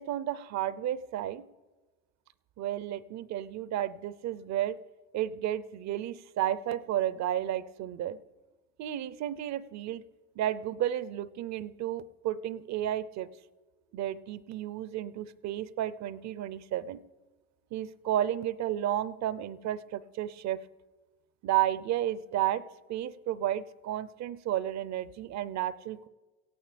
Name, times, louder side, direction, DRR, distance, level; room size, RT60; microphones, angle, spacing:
voice 1, 0.0-1.4 2.6-4.8 5.1-8.2 8.8-10.0 10.4-13.3 13.9-17.0 17.7-20.6 21.4-22.6 22.9-26.1, right 12 dB, 40° right, 18 dB, 0.7 m, -32 dB
18.0 x 15.0 x 3.4 m, 1.2 s
hypercardioid pair, 95°, 43 cm